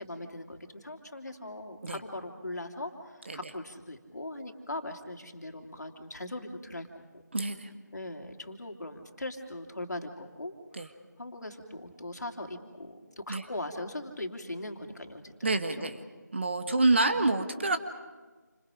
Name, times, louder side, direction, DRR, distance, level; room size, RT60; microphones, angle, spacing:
voice 1, 0.0-7.2 7.9-15.9 17.1-17.2, left 1 dB, 65° left, 4 dB, 3.0 m, -40 dB
voice 2, 7.3-7.7 10.7-10.9 13.3-13.4 15.4-16.0 16.3-17.8, right 2 dB, 40° right, 8 dB, 1.3 m, -27 dB
29.0 x 27.0 x 5.1 m, 1.3 s
figure-of-eight pair, 165°, 10 cm